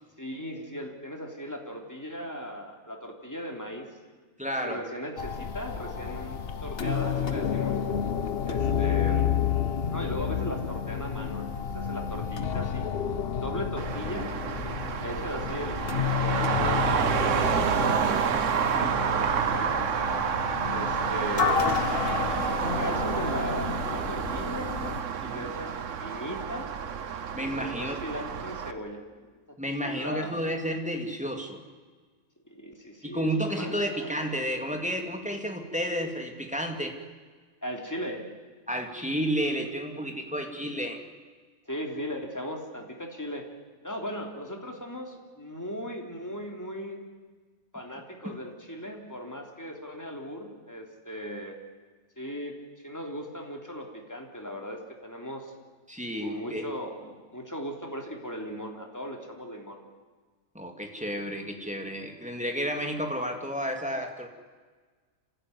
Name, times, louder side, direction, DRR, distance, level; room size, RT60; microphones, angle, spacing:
voice 1, 0.2-3.8 4.6-7.8 8.4-9.3 9.9-12.9 13.4-14.3 15.0-15.8 16.1-19.9 20.7-21.7 22.8-24.7 25.2-25.7 26.0-26.7 27.4-29.3 29.8-30.3 32.5-34.1 37.6-38.2 41.7-43.4 43.8-47.0 47.7-51.6 52.2-52.5 52.8-55.5 56.2-59.8, equal, 10° left, 2 dB, 3.2 m, -38 dB
voice 2, 4.4-4.8 25.2-25.6 27.3-28.0 29.6-31.6 33.0-37.0 38.7-41.0 48.2-48.3 55.9-56.7 60.5-64.3, equal, 5° right, 3 dB, 2.6 m, -31 dB
sound 1, 5.2-25.0, left 7 dB, 50° left, 1.1 m, -30 dB
Traffic noise roadway noise, 13.8-28.7, right 7 dB, 65° right, 1.4 m, -29 dB
27.0 x 16.0 x 9.6 m, 1.4 s
omnidirectional pair, 1.4 m